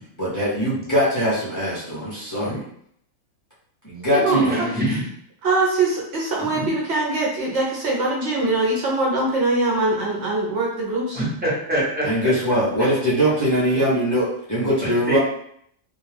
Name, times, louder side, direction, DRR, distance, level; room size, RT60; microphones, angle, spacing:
voice 1, 0.2-2.6 3.8-4.6 12.0-15.2, equal, 20° left, -9 dB, 0.6 m, -22 dB
voice 2, 4.3-5.0 6.6-6.7 11.1-12.1 15.1-15.2, right 2 dB, 10° right, -8 dB, 0.8 m, -23 dB
voice 3, 5.4-11.2, right 2 dB, 65° right, -3 dB, 0.9 m, -22 dB
2.3 x 2.3 x 3.3 m, 0.68 s
omnidirectional pair, 1.3 m